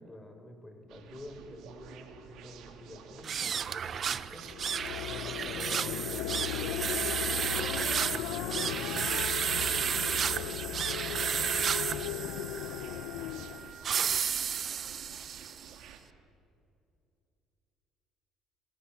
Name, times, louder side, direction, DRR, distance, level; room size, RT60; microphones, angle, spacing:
voice 1, 0.0-4.5 4.9-7.2, left 1 dB, 15° left, 6 dB, 4.5 m, -49 dB
sound 1, 0.9-16.0, right 7 dB, 70° right, 2.7 m, -51 dB
sound 2, 3.2-15.7, right 8 dB, 45° right, 0.8 m, -33 dB
sound 3, 4.4-13.8, left 13 dB, 85° left, 0.8 m, -37 dB
voice 2, 7.7-7.8, left 1 dB, 40° left, 0 dB, 7.7 m, -57 dB
27.0 x 21.5 x 7.4 m, 2.5 s
supercardioid pair, 80°, 0 cm